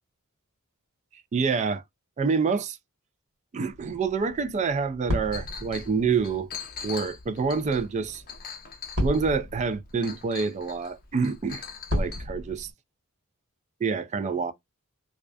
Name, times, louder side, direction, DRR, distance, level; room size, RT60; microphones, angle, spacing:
voice 1, 1.3-1.8 2.2-2.8 3.5-6.5 6.8-8.2 9.0-11.6 11.9-12.7 13.8-14.5, right 5 dB, 30° right, 0.3 m, -27 dB
sound 1, 3.7-12.7, left 1 dB, 60° right, 1.4 m, -35 dB
Chink clink, 5.3-5.9 6.2-9.4 10.0-10.9 11.2-12.2, left 7 dB, 40° left, 0.5 m, -41 dB
2.3 x 2.2 x 2.3 m
head